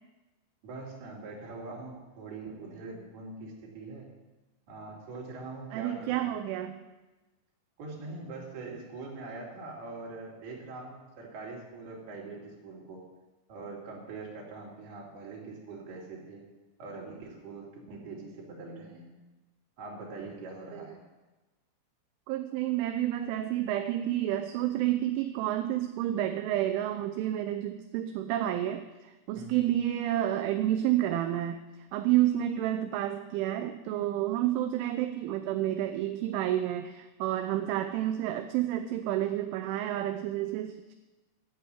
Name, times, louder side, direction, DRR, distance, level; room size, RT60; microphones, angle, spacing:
voice 1, 0.6-4.1 4.7-6.2 7.8-13.0 13.5-16.4 16.8-19.1 19.8-21.0 29.3-29.7, right 3 dB, 55° right, -2 dB, 4.5 m, -43 dB
voice 2, 5.7-6.8 20.7-20.9 22.3-31.6 31.9-41.0, right 13 dB, 80° right, 6 dB, 3.0 m, -30 dB
13.0 x 8.4 x 9.0 m, 1.1 s
omnidirectional pair, 5.7 m